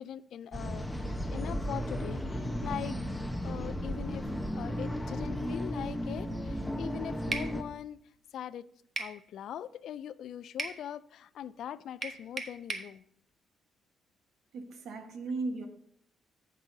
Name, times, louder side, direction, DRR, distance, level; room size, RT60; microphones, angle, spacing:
voice 1, 0.0-3.0 3.4-4.3 4.5-8.0 8.3-8.7 9.0-13.0, left 10 dB, 70° left, 0.3 m, -41 dB
sound 1, 0.5-7.6, equal, 5° left, 1.0 m, -35 dB
sound 2, 1.0-7.0, left 7 dB, 20° left, 2.4 m, -53 dB
sound 3, 7.3-7.5 9.0-9.2 10.6-10.8 12.0-12.9, right 3 dB, 40° right, 1.1 m, -36 dB
voice 2, 14.5-15.7, right 3 dB, 70° right, 1.3 m, -36 dB
14.5 x 6.1 x 2.7 m
cardioid pair, 90°, 0 cm